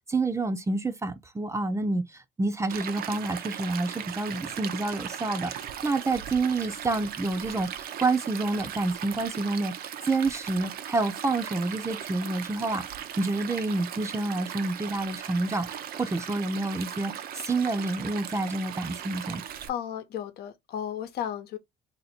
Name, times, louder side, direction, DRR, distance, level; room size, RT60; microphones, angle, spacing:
voice 1, 0.1-9.7 10.0-12.8 13.2-15.7 16.0-19.4, right 3 dB, 15° right, 0.6 m, -28 dB
Stream, 2.7-19.7, right 9 dB, 60° right, 0.6 m, -38 dB
voice 2, 19.7-21.6, left 9 dB, 70° left, 1.0 m, -34 dB
2.9 x 2.8 x 4.2 m
cardioid pair, 110°, 17 cm